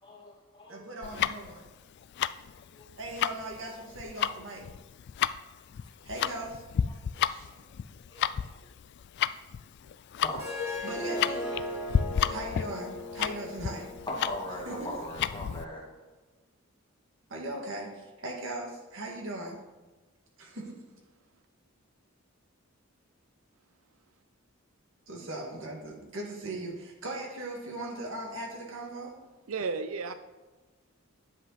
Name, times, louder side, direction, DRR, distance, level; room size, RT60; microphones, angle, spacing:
voice 1, 0.0-0.9 2.7-2.9 6.1-6.2 6.8-7.6 8.1-8.6 10.2-10.4 14.1-16.0, left 1 dB, 20° left, -2 dB, 2.0 m, -40 dB
voice 2, 0.7-1.6 3.0-4.7 6.0-6.6 7.3-7.5 10.8-11.5 12.3-13.9 14.7-14.9 17.3-19.6 20.4-20.8 25.1-29.1, right 1 dB, 65° right, 0 dB, 1.9 m, -39 dB
Tick-tock, 1.0-15.6, left 8 dB, 55° left, 0.3 m, -32 dB
Harp, 10.3-15.5, left 2 dB, 15° right, 2.2 m, -38 dB
voice 3, 29.5-30.1, right 4 dB, 80° right, 11 dB, 0.5 m, -32 dB
9.9 x 7.7 x 4.1 m, 1.2 s
head